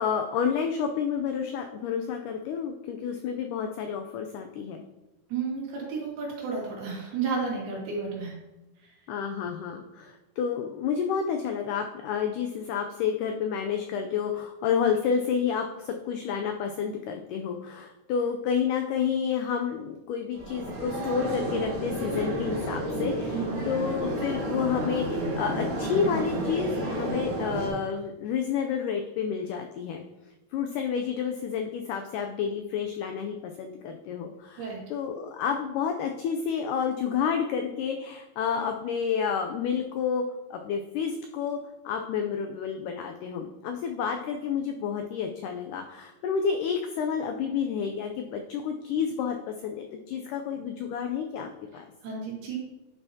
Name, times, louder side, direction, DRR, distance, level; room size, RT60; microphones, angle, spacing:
voice 1, 0.0-4.8 9.1-30.0 30.5-40.2 40.5-41.6 41.9-51.9, left 7 dB, 90° left, 4 dB, 1.8 m, -30 dB
voice 2, 5.3-8.4 23.3-23.7 34.6-34.8 52.0-52.6, right 5 dB, 85° right, -3 dB, 3.9 m, -32 dB
sound 1, 20.3-27.7, right 1 dB, 60° right, 1.2 m, -31 dB
10.5 x 5.5 x 2.8 m, 1.0 s
omnidirectional pair, 4.3 m